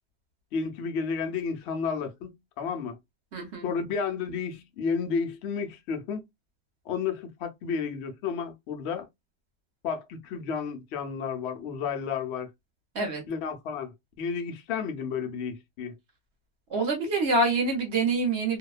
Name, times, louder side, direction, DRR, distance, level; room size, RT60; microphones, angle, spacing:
voice 1, 0.5-3.0 3.6-6.2 6.9-9.1 9.8-12.5 13.3-15.9, left 6 dB, 70° left, 0.6 m, -32 dB
voice 2, 3.3-3.7 12.9-13.2 16.7-18.6, right 3 dB, 50° right, 0.9 m, -26 dB
2.7 x 2.1 x 2.3 m
omnidirectional pair, 1.8 m